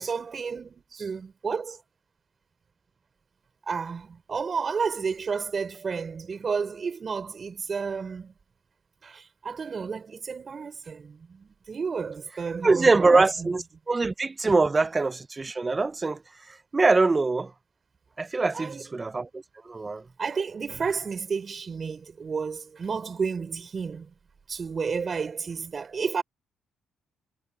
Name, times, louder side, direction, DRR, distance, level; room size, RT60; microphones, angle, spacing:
voice 1, 0.0-1.8 3.7-8.3 9.0-13.5 18.5-18.9 20.2-24.1 24.5-26.2, right 5 dB, 40° right, 4.9 m, -31 dB
voice 2, 12.6-17.5 18.2-19.3 19.7-20.0, right 3 dB, 25° right, 0.5 m, -23 dB
cardioid pair, 90°, 0 cm